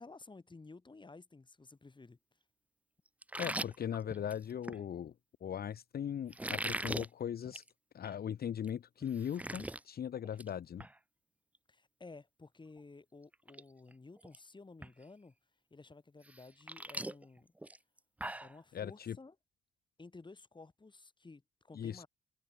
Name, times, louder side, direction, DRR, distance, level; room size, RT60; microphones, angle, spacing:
voice 1, 0.0-2.2 11.7-15.3 15.7-17.5 18.4-19.3 20.0-22.1, left 3 dB, 25° left, 8.0 m, -54 dB
sound 1, 3.2-4.8 6.3-7.1 7.5-7.7 8.0-8.1 8.6-8.7 9.0-9.8 10.2-10.5 10.8-10.9 12.8-12.9 13.3-13.6 13.9-14.4 14.8-14.9 16.3-18.6, right 1 dB, 5° right, 0.7 m, -40 dB
voice 2, 3.4-5.1 5.4-7.6 7.9-10.8 18.7-19.2 21.7-22.0, left 9 dB, 50° left, 1.1 m, -39 dB
cardioid pair, 90°, 20 cm